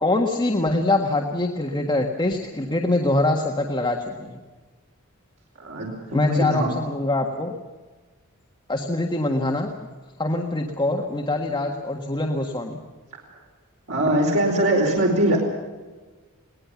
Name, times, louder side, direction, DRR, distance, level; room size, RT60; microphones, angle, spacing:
voice 1, 0.0-4.4 6.1-7.6 8.7-9.7 10.2-12.8, left 2 dB, 20° left, 1 dB, 1.6 m, -24 dB
voice 2, 5.6-6.7 13.9-15.4, right 1 dB, 75° right, -2 dB, 4.6 m, -21 dB
22.5 x 19.0 x 7.2 m, 1.3 s
head